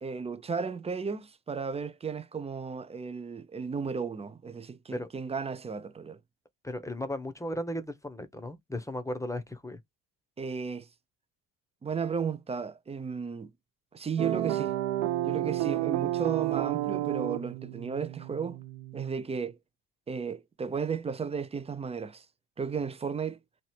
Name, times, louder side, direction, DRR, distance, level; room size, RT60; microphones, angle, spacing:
voice 1, 0.0-6.2 10.4-10.9 11.8-13.5 13.9-14.7 15.3-18.6 18.9-19.6 20.1-22.3 22.6-23.4, right 6 dB, 15° right, 0.4 m, -34 dB
voice 2, 6.6-9.8, left 1 dB, 5° left, 0.8 m, -36 dB
sound 1, 14.2-19.2, right 14 dB, 65° right, 1.0 m, -31 dB
3.2 x 2.7 x 4.3 m
hypercardioid pair, 65°, 50 cm